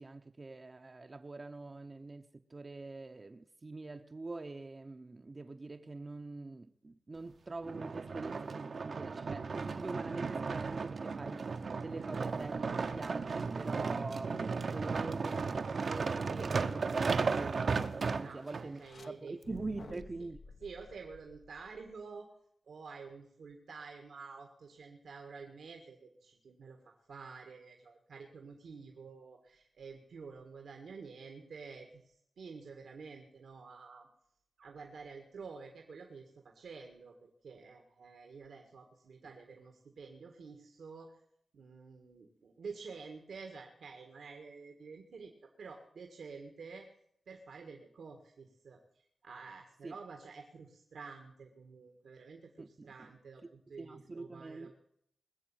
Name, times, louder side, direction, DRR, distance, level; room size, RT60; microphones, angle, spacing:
voice 1, 0.0-11.4 11.8-17.8 18.1-18.8 19.1-20.4 49.8-49.9 52.6-53.1 53.8-54.7, right 3 dB, 40° right, 0.7 m, -44 dB
sound 1, 7.7-18.7 19.3-19.4, right 4 dB, 70° right, 0.9 m, -35 dB
voice 2, 18.2-19.4 19.8-20.0 20.6-22.3 22.7-34.1 34.6-41.1 41.5-46.8 47.3-54.7, right 4 dB, 90° right, 1.6 m, -50 dB
sound 2, 18.6-19.1 19.4-22.0, left 4 dB, 70° left, 0.9 m, -53 dB
20.5 x 7.1 x 8.9 m
cardioid pair, 55°, 0 cm